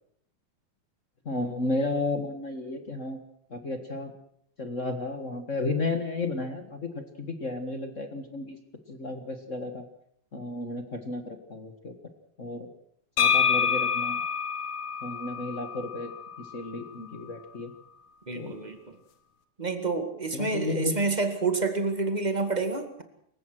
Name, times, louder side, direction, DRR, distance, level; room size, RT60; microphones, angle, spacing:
voice 1, 1.2-3.2 3.5-4.1 4.6-8.6 8.9-9.8 10.3-11.9 12.4-12.7 13.2-14.2 15.0-16.1 16.4-17.7 18.3-18.6 20.3-20.9, left 2 dB, 35° left, 7 dB, 1.2 m, -33 dB
sound 1, 13.2-17.0, left 7 dB, 65° left, 2.7 m, -27 dB
voice 2, 18.3-19.0 19.6-23.0, right 3 dB, 20° right, 7 dB, 1.4 m, -28 dB
27.5 x 15.5 x 6.2 m, 0.70 s
omnidirectional pair, 3.8 m